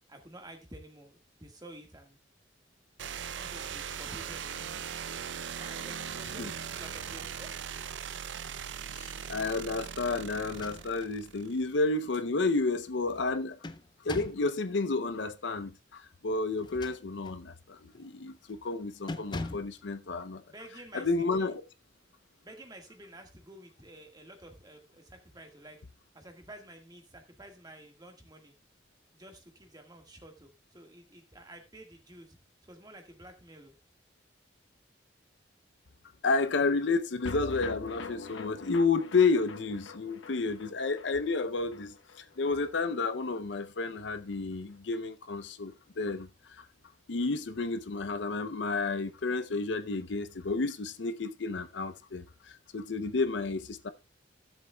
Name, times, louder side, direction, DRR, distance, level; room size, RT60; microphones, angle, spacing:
voice 1, 0.1-2.2 3.3-4.8 5.5-7.6 8.5-8.7 20.5-21.6 22.4-25.8 26.1-28.5 29.1-32.4 32.6-33.8, right 1 dB, 20° right, 1.6 m, -51 dB
sound 1, 3.0-11.7, right 7 dB, 75° right, 0.5 m, -40 dB
voice 2, 8.9-13.6 14.0-20.4 20.9-21.6 36.2-46.7 47.1-53.9, left 3 dB, 70° left, 0.6 m, -31 dB
sound 2, 10.4-11.2 11.6-11.7 13.2-14.5 16.5-17.4 17.9-18.2 18.5-18.7 19.1-19.8, left 2 dB, 25° left, 0.4 m, -41 dB
sound 3, 37.3-43.7 44.0-44.1 44.3-44.4, left 3 dB, 90° left, 1.1 m, -44 dB
16.0 x 7.3 x 2.3 m
head